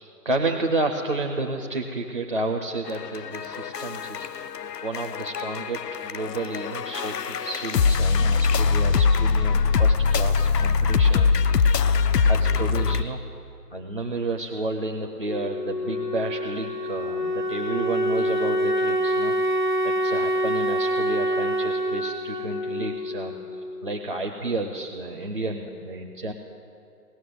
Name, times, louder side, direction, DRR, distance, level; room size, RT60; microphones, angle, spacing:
voice 1, 0.0-4.3 4.8-13.2 13.7-19.4 19.8-26.3, right 2 dB, 35° right, 2 dB, 0.5 m, -31 dB
sound 1, 2.9-13.0, left 5 dB, 85° left, 0.7 m, -22 dB
Wind instrument woodwind instrument, 15.2-23.9, equal, 30° left, 0.5 m, -26 dB
18.0 x 6.3 x 9.2 m, 2.5 s
hypercardioid pair, 170°, 47 cm